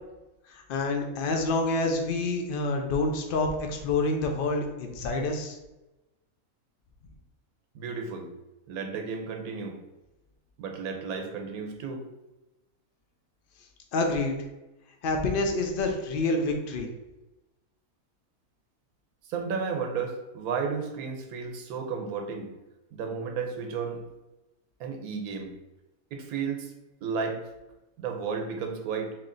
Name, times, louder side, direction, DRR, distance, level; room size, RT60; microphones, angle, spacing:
voice 1, 0.5-5.6 13.9-14.4 15.0-16.9, left 2 dB, 80° left, 3 dB, 0.4 m, -27 dB
voice 2, 7.7-8.3 8.7-9.8 10.6-12.1 19.3-22.5 22.9-24.0 24.8-25.5 26.1-26.7 27.0-27.4 28.0-29.1, right 5 dB, 90° right, 3 dB, 1.1 m, -33 dB
3.1 x 2.7 x 3.7 m, 1.0 s
omnidirectional pair, 1.5 m